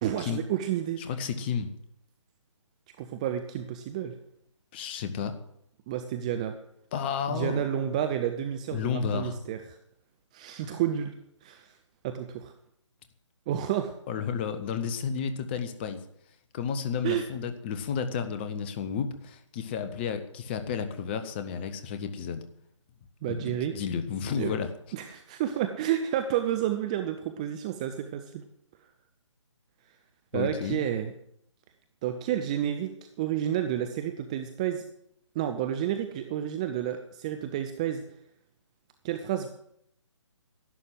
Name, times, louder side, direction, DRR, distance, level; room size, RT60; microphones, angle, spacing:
voice 1, 0.0-1.1 3.0-4.2 5.9-6.5 7.3-9.8 10.3-11.1 11.4-11.7 12.0-12.5 13.5-13.9 17.0-17.2 23.2-23.7 24.4-24.5 24.9-28.4 30.3-31.1 32.0-34.8 35.4-38.0 39.0-39.5, right 10 dB, 15° right, 8 dB, 0.5 m, -30 dB
voice 2, 1.0-1.7 4.7-5.3 6.9-7.7 8.7-9.4 14.1-16.0 16.5-22.4 23.3-24.7 30.3-30.8, left 7 dB, 20° left, 9 dB, 1.1 m, -32 dB
11.5 x 11.5 x 7.8 m, 0.72 s
figure-of-eight pair, 140°, 16 cm